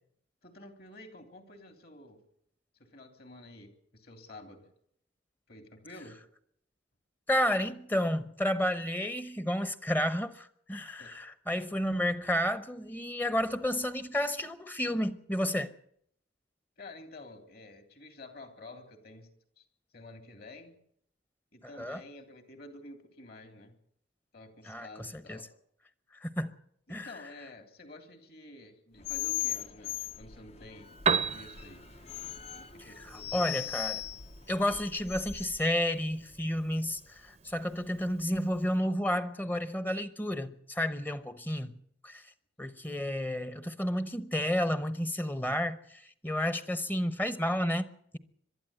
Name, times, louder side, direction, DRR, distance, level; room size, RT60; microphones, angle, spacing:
voice 1, 0.4-2.2 2.9-4.7 5.5-6.2 11.0-11.1 16.8-19.3 19.6-19.7 19.9-20.8 21.5-23.8 24.3-25.5 26.9-31.8 32.6-33.4, left 2 dB, 55° left, 3.3 m, -50 dB
voice 2, 7.3-15.7 21.8-22.0 24.7-25.4 26.1-26.5 26.9-27.2 32.8-34.1 34.5-41.7 42.0-42.3 42.6-48.2, left 1 dB, 10° left, 0.9 m, -31 dB
sound 1, 29.0-35.7, left 13 dB, 35° left, 0.8 m, -38 dB
Piano, 30.8-38.8, right 6 dB, 35° right, 0.7 m, -38 dB
22.5 x 12.5 x 9.0 m
head